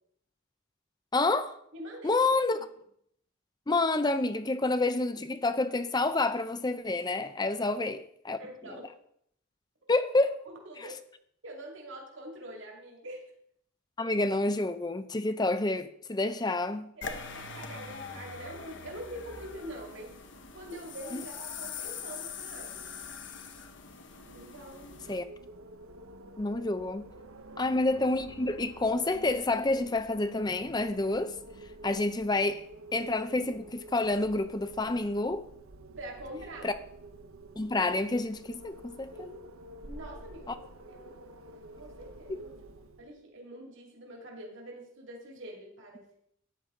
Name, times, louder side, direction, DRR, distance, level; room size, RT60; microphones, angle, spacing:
voice 1, 1.1-1.6 2.0-2.6 3.7-8.4 9.9-10.4 10.8-10.9 14.0-16.9 21.1-21.2 25.1-25.2 26.4-27.1 27.6-31.4 31.8-32.6 32.9-35.5 36.6-36.7 37.6-39.1 40.5-40.6 42.3-42.4, left 2 dB, 20° left, 0.5 m, -28 dB
voice 2, 1.7-2.2 2.5-2.6 7.6-7.7 8.4-8.9 10.5-11.0 11.4-13.2 17.0-20.1 20.5-23.0 24.3-25.0 27.5-27.6 36.0-36.8 39.1-39.4 39.8-41.2 41.8-42.5 43.0-46.1, right 1 dB, 60° right, 2.3 m, -45 dB
sound 1, 17.0-25.2, left 5 dB, 60° left, 1.2 m, -43 dB
Wind, 24.1-43.2, right 2 dB, 85° right, 1.1 m, -49 dB
13.5 x 9.8 x 3.7 m
head